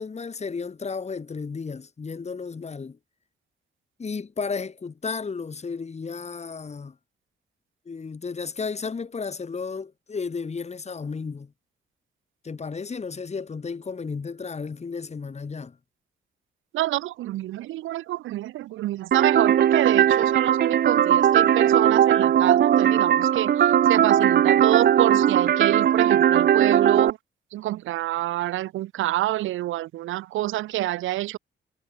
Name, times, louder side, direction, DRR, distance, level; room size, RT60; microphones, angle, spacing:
voice 1, 0.0-3.0 4.0-6.9 7.9-11.5 12.4-15.8, left 5 dB, 35° left, 5.7 m, -33 dB
voice 2, 16.7-23.5 23.9-27.2 27.5-31.4, right 15 dB, 85° right, 1.1 m, -27 dB
sound 1, 19.1-27.1, right 10 dB, 55° right, 0.7 m, -19 dB
cardioid pair, 90°, 20 cm